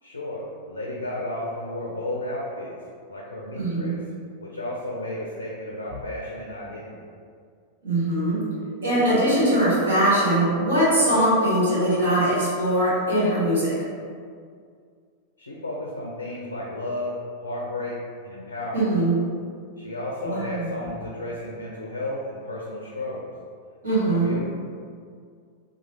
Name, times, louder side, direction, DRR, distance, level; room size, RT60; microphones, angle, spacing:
voice 1, 0.0-2.8 3.1-4.0 4.4-7.1 15.4-17.1 17.4-18.0 18.2-18.9 19.8-23.3 24.1-24.4, left 1 dB, 80° left, -3 dB, 0.4 m, -33 dB
voice 2, 3.5-4.0 7.8-8.4 8.8-13.7 18.7-19.1 20.2-20.8 23.8-24.3, right 1 dB, 70° right, -9 dB, 1.4 m, -21 dB
3.0 x 2.2 x 2.8 m, 2.1 s
figure-of-eight pair, 90°, 0 cm